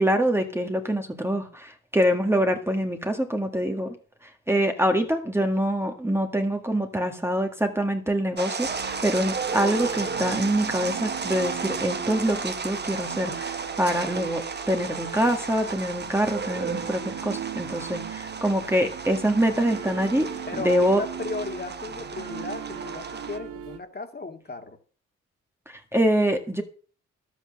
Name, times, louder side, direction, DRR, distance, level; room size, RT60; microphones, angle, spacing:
voice 1, 0.0-3.9 4.2-21.0 25.7-26.6, equal, 10° right, 4 dB, 1.8 m, -25 dB
sound 1, 8.4-23.4, right 5 dB, 35° right, 1.3 m, -34 dB
sound 2, 8.6-23.8, right 9 dB, 85° right, 1.5 m, -39 dB
voice 2, 20.5-24.8, left 3 dB, 35° left, 5 dB, 2.3 m, -35 dB
11.5 x 8.2 x 6.4 m, 0.42 s
cardioid pair, 65°, 29 cm